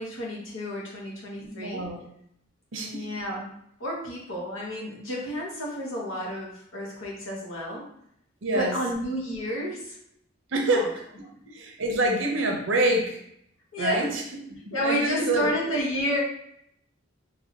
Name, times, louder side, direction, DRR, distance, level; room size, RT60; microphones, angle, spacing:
voice 1, 0.0-1.9 2.8-3.5 3.8-7.9 8.5-10.0 10.7-10.9 11.4-11.5 13.7-14.1 14.7-16.2, equal, 80° left, -3 dB, 1.2 m, -31 dB
voice 2, 1.4-2.0 2.7-3.1 8.4-8.7 10.5-11.0 11.5-13.2 13.8-14.2 14.5-15.7, right 1 dB, 65° right, 2 dB, 0.7 m, -26 dB
4.2 x 2.7 x 2.9 m, 0.72 s
head